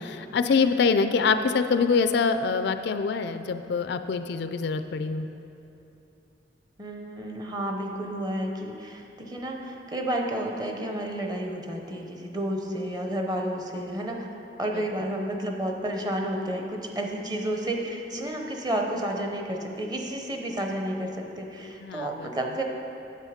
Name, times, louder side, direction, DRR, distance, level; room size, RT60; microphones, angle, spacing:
voice 1, 0.0-5.3 21.8-22.3, left 5 dB, 65° left, 10 dB, 0.4 m, -25 dB
voice 2, 6.8-14.3 14.6-22.6, right 1 dB, 25° right, 2 dB, 0.8 m, -31 dB
9.1 x 7.5 x 5.0 m, 2.8 s
head